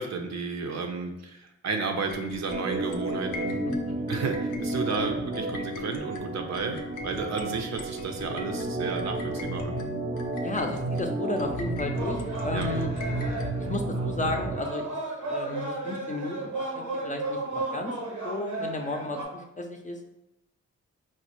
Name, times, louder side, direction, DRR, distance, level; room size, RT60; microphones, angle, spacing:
voice 1, 0.0-3.8 4.1-6.8 7.0-9.8 12.5-12.7, right 4 dB, 60° right, 4 dB, 0.6 m, -32 dB
sound 1, 2.1-13.8, left 2 dB, 85° left, 0.5 m, -41 dB
Organ, 2.5-14.6, right 2 dB, 20° right, 0.6 m, -32 dB
voice 2, 10.4-12.9 13.7-15.0 15.2-17.9 18.2-20.0, left 2 dB, 25° left, 3 dB, 0.6 m, -33 dB
sound 2, 11.8-19.2, right 2 dB, 85° right, 0.9 m, -34 dB
4.2 x 2.1 x 3.0 m, 0.85 s
supercardioid pair, 50°, 30 cm